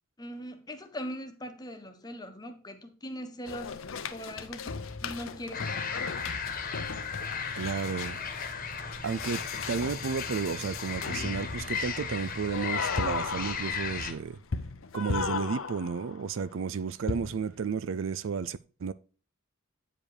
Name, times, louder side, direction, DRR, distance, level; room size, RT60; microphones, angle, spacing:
voice 1, 0.2-3.8 4.1-6.2, equal, 20° left, 1.1 m, -41 dB
sound 1, 3.5-16.3 17.1-17.5, left 5 dB, 70° left, 0.7 m, -37 dB
sound 2, 5.5-14.1, left 5 dB, 45° left, 1.3 m, -36 dB
voice 2, 7.6-8.2 9.0-14.4 14.9-18.9, right 6 dB, 65° right, 0.4 m, -32 dB
8.8 x 5.0 x 4.8 m
head